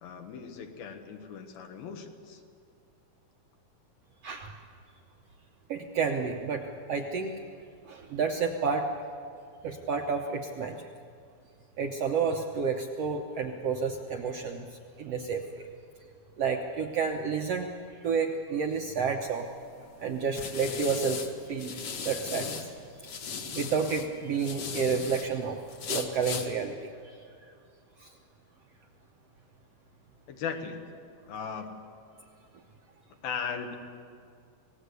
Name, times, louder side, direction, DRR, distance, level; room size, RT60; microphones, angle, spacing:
voice 1, 0.0-2.4 30.3-30.8 31.3-31.8 33.2-33.8, left 6 dB, 80° left, 4 dB, 3.4 m, -37 dB
voice 2, 4.2-4.5 5.7-7.3 7.8-8.9 9.6-10.9 11.8-15.7 16.4-19.5 20.0-21.2 21.5-22.7 23.5-25.6 25.9-27.2 28.0-28.2, right 5 dB, 70° right, 3 dB, 1.5 m, -30 dB
sound 1, 19.4-22.7 23.0-25.3 25.7-26.5, left 5 dB, 50° left, 2.2 m, -37 dB
26.0 x 19.0 x 8.2 m, 2.3 s
omnidirectional pair, 4.3 m